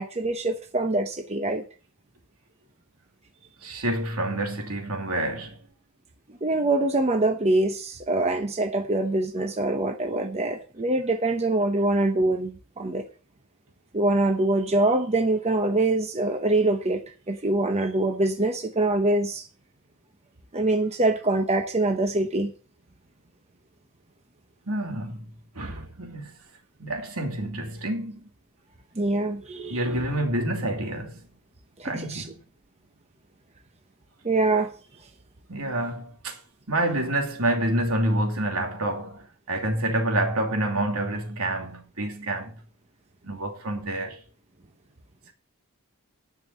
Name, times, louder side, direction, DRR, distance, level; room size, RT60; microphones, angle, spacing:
voice 1, 0.0-1.6 6.4-13.0 13.9-19.4 20.5-22.5 29.0-29.8 31.8-32.2 34.2-34.7, right 2 dB, 30° right, 0.9 m, -24 dB
voice 2, 3.6-5.6 24.7-25.3 25.5-26.4 26.8-28.3 29.7-31.3 31.8-32.3 35.5-36.4 36.7-42.6 43.2-44.2, right 1 dB, 75° right, 2.7 m, -28 dB
10.5 x 5.8 x 7.3 m
head